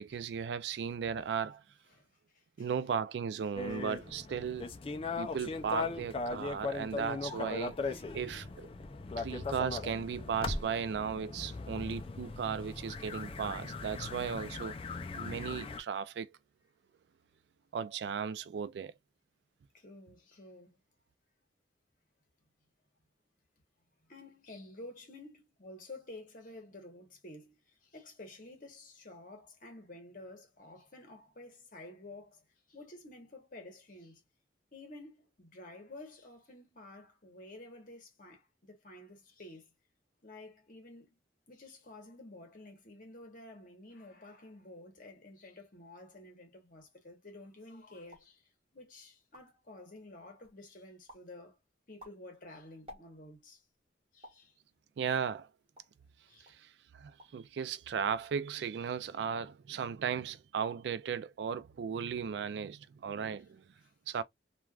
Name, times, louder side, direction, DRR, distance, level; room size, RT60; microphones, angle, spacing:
voice 1, 0.0-1.6 2.6-4.7 5.2-8.7 9.2-14.8 15.1-16.3 17.7-18.9 55.0-55.5 56.6-63.6 64.1-64.2, right 7 dB, 65° right, 0.3 m, -36 dB
voice 2, 1.9-2.7 19.7-20.8 24.0-34.2 34.7-39.7 40.2-41.2 41.5-51.6 51.9-53.6 54.1-54.5 56.3-56.5 63.8-63.9, left 2 dB, 50° left, 1.1 m, -51 dB
sound 1, 3.6-15.8, left 3 dB, 30° left, 0.3 m, -39 dB
sound 2, 48.1-48.4 48.9-49.0 49.2-49.7 50.2-50.6 51.1-51.4 51.8-53.5 54.2-54.5 55.1-56.0 56.5-56.7 57.0-57.5 57.7-58.2, left 1 dB, 30° right, 1.1 m, -56 dB
3.2 x 2.3 x 2.3 m
head